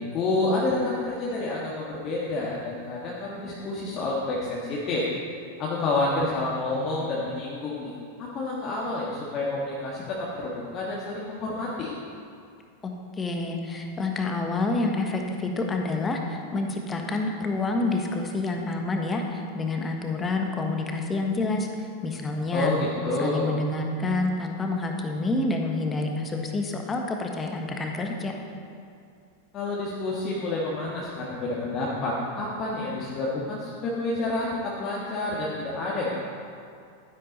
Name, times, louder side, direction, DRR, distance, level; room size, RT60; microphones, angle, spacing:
voice 1, 0.0-5.1 5.6-7.9 8.2-11.9 22.5-23.5 29.5-36.2, left 2 dB, 35° left, -5 dB, 1.6 m, -29 dB
voice 2, 12.8-22.7 23.2-28.3, left 2 dB, 15° left, 3 dB, 1.3 m, -28 dB
12.0 x 10.5 x 4.2 m, 2.4 s
figure-of-eight pair, 90°, 0 cm